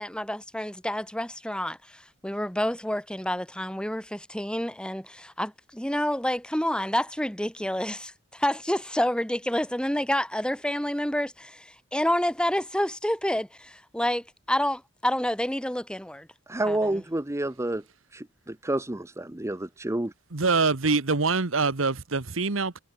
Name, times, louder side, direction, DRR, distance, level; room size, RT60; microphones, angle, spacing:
voice 1, 0.0-16.3 16.7-16.8, left 1 dB, 5° left, 2.6 m, -28 dB
voice 2, 16.5-17.8 18.1-20.1, right 1 dB, 15° right, 0.8 m, -29 dB
voice 3, 20.3-22.8, right 4 dB, 85° right, 1.4 m, -24 dB
head